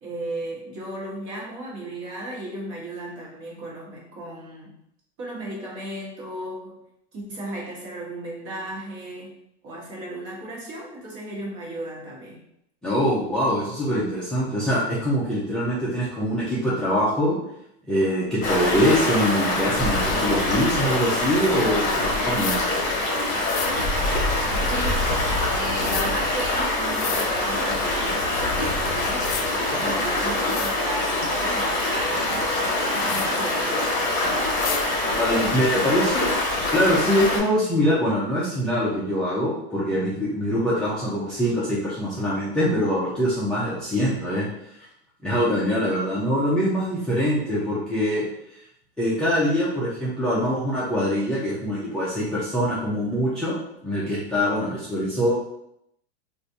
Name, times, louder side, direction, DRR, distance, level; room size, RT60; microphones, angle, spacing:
voice 1, 0.0-4.8 5.2-6.8 7.1-9.3 9.6-12.5 24.7-25.0 25.5-32.3 32.9-34.0, right 1 dB, 40° right, -4 dB, 1.2 m, -35 dB
voice 2, 12.8-17.4 17.9-22.7 29.7-30.0 35.2-36.3 36.7-44.5 44.7-44.8 45.2-48.2 48.5-48.6 49.0-55.3, equal, ahead, -9 dB, 0.4 m, -24 dB
Stream, 18.4-37.4, left 2 dB, 25° left, 1.1 m, -24 dB
sound 1, 22.3-22.6 23.5-23.7 25.8-26.1 26.9-27.3 28.7-28.8 29.2-29.5 30.1-30.2 30.5-30.8 33.1-33.3 34.6-34.8, left 9 dB, 85° left, 0.5 m, -31 dB
3.3 x 2.5 x 2.6 m, 0.77 s
supercardioid pair, 145°, 33 cm